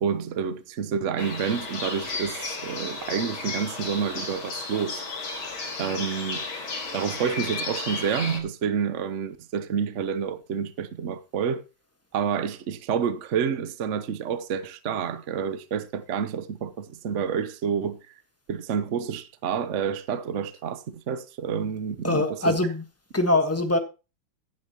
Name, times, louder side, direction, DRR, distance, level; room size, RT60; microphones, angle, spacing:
voice 1, 0.0-5.0 5.8-6.4 6.9-11.6 12.1-18.0 18.5-22.6, right 7 dB, 50° right, 0.9 m, -29 dB
sound 1, 1.2-8.4, left 3 dB, 85° left, 3.3 m, -34 dB
voice 2, 22.0-22.9 23.1-23.8, left 2 dB, 10° left, 1.0 m, -23 dB
14.0 x 10.0 x 3.0 m
omnidirectional pair, 2.2 m